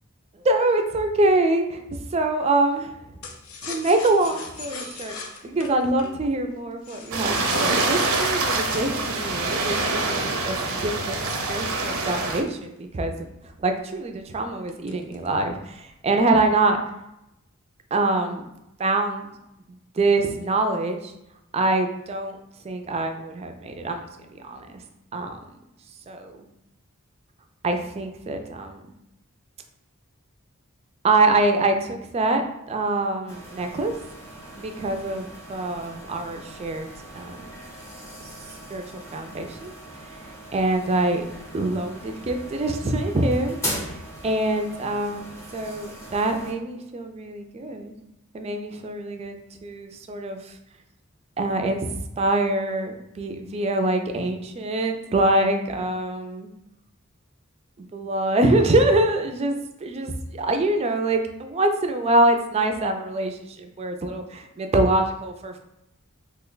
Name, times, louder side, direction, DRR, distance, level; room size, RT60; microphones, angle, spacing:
voice 1, 0.4-2.9 3.6-5.1 5.4-11.2 11.5-13.3 13.6-16.8 17.9-18.4 18.8-19.3 19.9-21.1 21.5-22.4 22.6-24.7 25.1-25.4 26.1-26.5 27.6-28.8 31.0-33.9 34.6-36.9 37.1-37.4 38.7-39.7 40.2-41.2 41.5-44.0 44.2-45.3 45.5-47.9 48.3-50.5 51.4-51.9 52.2-56.5 57.9-65.6, right 2 dB, 30° right, 5 dB, 0.3 m, -24 dB
sound 1, 3.2-10.1 10.7-13.1 13.5-13.6 13.9-14.2 14.7-15.4 15.7-16.3, left 4 dB, 75° left, 0.4 m, -41 dB
sound 2, 7.1-12.4, right 3 dB, 85° right, 0.5 m, -25 dB
sound 3, 33.3-46.5, equal, 15° left, 0.7 m, -39 dB
2.9 x 2.1 x 3.8 m, 0.87 s
head